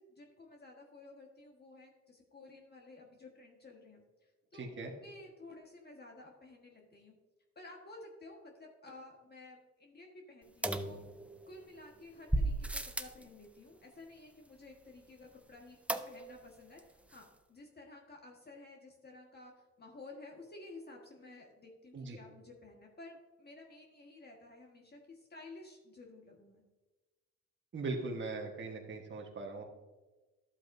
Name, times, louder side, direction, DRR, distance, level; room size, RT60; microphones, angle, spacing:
voice 1, 0.0-7.2 7.5-11.0 11.5-15.8 16.1-26.6, left 2 dB, 35° left, 0 dB, 1.5 m, -53 dB
voice 2, 4.6-4.9 21.9-22.2 27.7-29.6, right 3 dB, 40° right, 0 dB, 1.3 m, -40 dB
sound 1, 10.6-11.6 12.3-13.2 15.9-16.5 16.8-16.9 17.1-17.2, right 1 dB, 5° right, 0.5 m, -35 dB
11.5 x 8.0 x 2.6 m, 1.2 s
cardioid pair, 90°, 30 cm